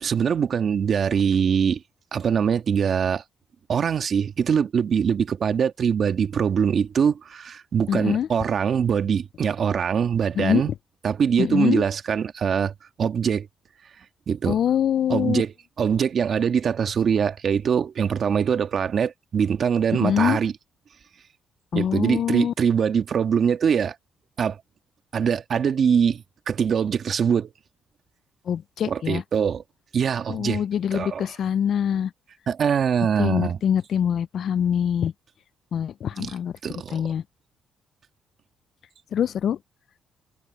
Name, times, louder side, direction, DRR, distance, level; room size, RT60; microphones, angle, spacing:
voice 1, 0.0-1.8 2.1-3.2 3.7-10.7 11.0-12.7 13.0-13.5 14.3-14.6 15.1-20.5 21.7-24.0 24.4-24.6 25.1-27.5 28.8-29.6 29.9-30.6 30.9-31.3 32.5-33.6 36.2-36.3 36.6-37.1, right 7 dB, 55° right, 1.6 m, -23 dB
voice 2, 7.9-8.3 10.4-10.7 11.4-11.8 14.5-15.4 20.0-20.4 21.7-22.5 28.5-29.2 30.3-32.1 33.2-35.1 35.7-36.5 36.9-37.2 39.1-39.6, left 9 dB, 65° left, 0.4 m, -24 dB
cardioid pair, 90°, 0 cm